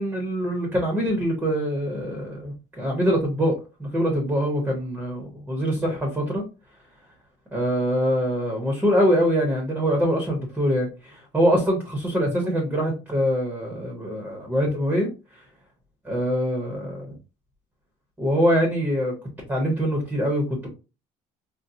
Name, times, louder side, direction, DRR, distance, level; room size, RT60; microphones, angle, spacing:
voice 1, 0.0-3.5 3.8-6.4 7.5-15.5 16.0-17.1 18.2-19.1 19.5-20.7, equal, 10° right, 2 dB, 0.8 m, -24 dB
4.1 x 2.1 x 2.5 m, 0.30 s
cardioid pair, 160°, 13 cm